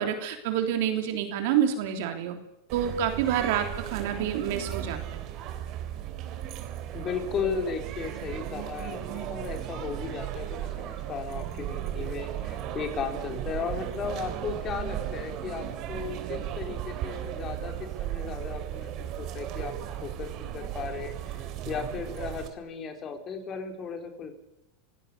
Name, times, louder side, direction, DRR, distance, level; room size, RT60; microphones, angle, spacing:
voice 1, 0.0-2.4 2.7-5.0, right 9 dB, 65° right, 6 dB, 3.4 m, -27 dB
sound 1, 2.7-22.5, right 11 dB, 50° right, 3.1 m, -36 dB
voice 2, 6.9-17.7 18.0-19.7 20.0-24.3, left 6 dB, 35° left, 5 dB, 4.4 m, -35 dB
26.5 x 17.0 x 6.9 m, 0.91 s
hypercardioid pair, 105°, 0 cm